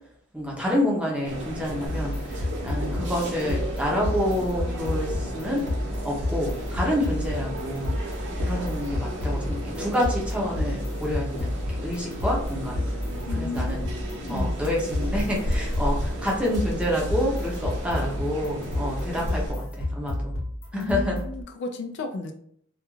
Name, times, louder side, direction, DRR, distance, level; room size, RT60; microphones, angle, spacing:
voice 1, 0.3-5.6 6.0-7.9 8.4-12.8 13.4-13.8 14.3-20.3 20.7-21.2, left 1 dB, 5° right, -3 dB, 0.6 m, -28 dB
sound 1, 1.2-19.5, equal, 55° right, 0.7 m, -34 dB
sound 2, 1.9-21.4, left 1 dB, 70° left, 0.8 m, -30 dB
voice 2, 13.2-14.7 20.7-22.3, left 3 dB, 55° left, 5 dB, 0.3 m, -34 dB
2.3 x 2.2 x 3.0 m, 0.65 s
head